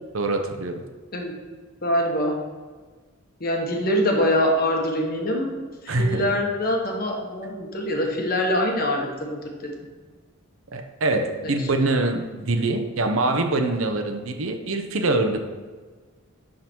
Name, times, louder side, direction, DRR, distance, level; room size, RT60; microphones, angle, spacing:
voice 1, 0.1-0.8 5.9-6.3 10.7-15.4, right 2 dB, 75° right, 5 dB, 0.8 m, -24 dB
voice 2, 1.8-2.4 3.4-5.5 5.8-9.4 11.4-11.5, left 1 dB, 45° left, 1 dB, 1.3 m, -24 dB
11.5 x 3.9 x 4.5 m, 1.4 s
head